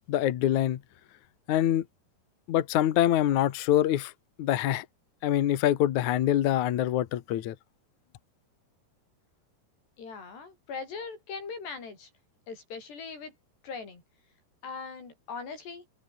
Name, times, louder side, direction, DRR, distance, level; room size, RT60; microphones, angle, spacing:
voice 1, 0.1-0.8 1.5-1.8 2.5-4.1 4.4-4.9 5.2-7.6, left 12 dB, 60° left, 2.2 m, -25 dB
voice 2, 10.0-12.1 12.5-13.3 13.6-14.0 14.6-15.9, left 5 dB, 80° left, 9.0 m, -40 dB
omnidirectional pair, 4.8 m